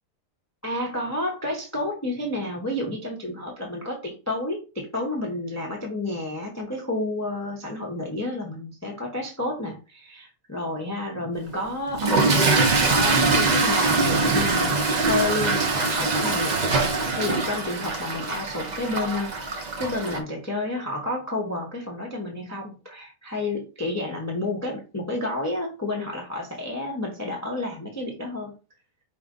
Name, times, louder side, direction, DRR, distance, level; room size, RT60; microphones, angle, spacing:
voice 1, 0.6-19.3 19.8-28.5, left 2 dB, 15° left, 0 dB, 0.7 m, -30 dB
Toilet flush / Fill (with liquid), 11.9-20.2, right 3 dB, 90° right, 0.3 m, -23 dB
5.0 x 2.8 x 3.7 m, 0.32 s
omnidirectional pair, 1.7 m